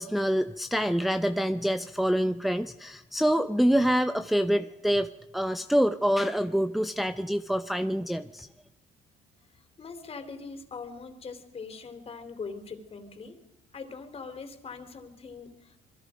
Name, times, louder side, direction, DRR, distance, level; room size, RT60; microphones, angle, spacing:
voice 1, 0.0-8.5, equal, ahead, 8 dB, 0.7 m, -26 dB
voice 2, 9.8-13.4 13.7-15.8, left 4 dB, 35° left, 7 dB, 3.6 m, -42 dB
27.0 x 23.0 x 5.1 m, 0.92 s
cardioid pair, 110°, 17 cm